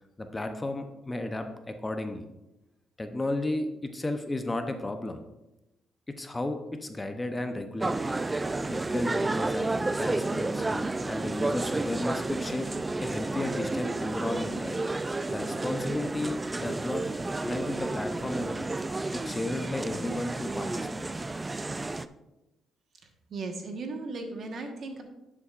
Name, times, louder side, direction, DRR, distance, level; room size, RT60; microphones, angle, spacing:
voice 1, 0.2-2.3 3.0-5.2 6.1-8.1 8.7-12.7 13.0-14.8 15.3-17.1 17.4-18.7 19.1-21.3, left 1 dB, 20° left, 7 dB, 0.7 m, -34 dB
sound 1, 7.8-22.1, right 2 dB, 20° right, 0.3 m, -31 dB
voice 2, 23.3-25.0, right 3 dB, 55° right, 4 dB, 1.3 m, -36 dB
10.5 x 7.2 x 2.5 m, 0.98 s
cardioid pair, 90°, 0 cm